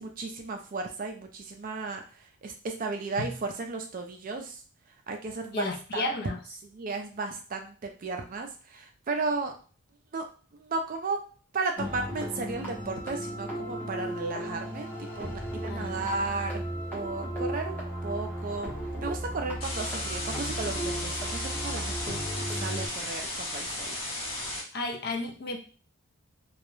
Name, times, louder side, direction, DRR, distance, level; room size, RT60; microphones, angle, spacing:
voice 1, 0.0-4.6 5.1-6.0 6.6-9.6 10.1-10.3 10.5-11.2 11.5-16.7 16.9-18.7 19.0-22.2 22.5-23.9, right 3 dB, 40° right, 4 dB, 0.4 m, -34 dB
voice 2, 5.5-6.4 15.7-16.1 24.7-25.6, left 2 dB, 45° left, 2 dB, 0.4 m, -33 dB
sound 1, 11.8-22.9, right 1 dB, 10° left, 0.7 m, -35 dB
sound 2, 19.6-24.6, left 1 dB, 70° left, 0.9 m, -35 dB
2.3 x 2.0 x 3.0 m, 0.39 s
head